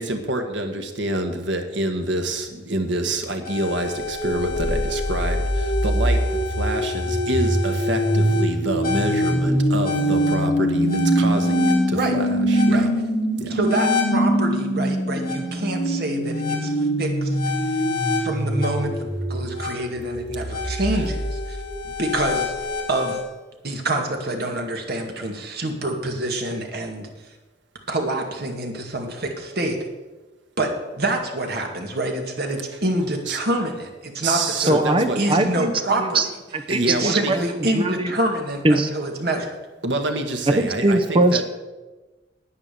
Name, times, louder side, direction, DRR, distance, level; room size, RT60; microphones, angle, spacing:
voice 1, 0.0-6.2 6.6-12.9 13.4-13.6 33.3-33.4 34.2-35.2 36.7-37.3 39.8-41.4, right 1 dB, 80° right, 5 dB, 1.6 m, -27 dB
sound 1, 3.4-23.2, equal, 50° left, 2.9 m, -23 dB
voice 2, 13.5-17.4 17.6-17.8 18.2-18.9 19.3-21.6 22.0-22.5 22.9-23.2 23.6-27.1 27.9-29.8 30.6-34.8 35.2-36.2 36.9-39.6, right 1 dB, 55° right, 2 dB, 2.0 m, -26 dB
voice 3, 34.7-35.7 36.0-36.3 36.5-37.4 37.7-38.1 38.6-38.9 40.6-41.4, right 2 dB, 30° right, 8 dB, 0.8 m, -20 dB
9.9 x 9.5 x 6.9 m, 1.2 s
head